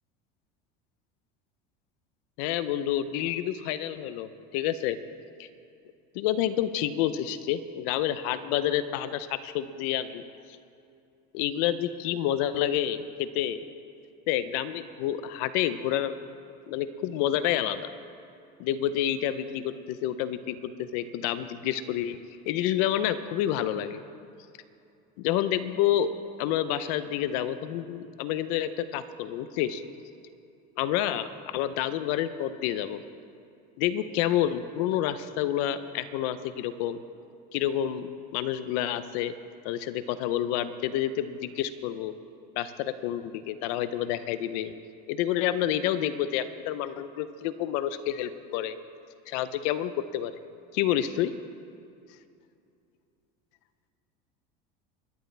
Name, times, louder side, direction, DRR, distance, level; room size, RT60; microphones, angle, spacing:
voice 1, 2.4-5.0 5.4-5.5 6.1-10.2 11.3-13.6 14.3-16.1 16.7-17.9 18.6-22.2 22.5-24.0 25.2-26.1 26.4-29.8 30.8-31.3 31.5-33.0 33.8-37.0 37.5-39.3 39.6-42.1 42.6-44.7 45.1-48.8 49.3-50.3 50.7-51.3, left 11 dB, 65° left, 12 dB, 0.6 m, -29 dB
24.5 x 10.5 x 3.4 m, 2.6 s
cardioid pair, 170°, 20 cm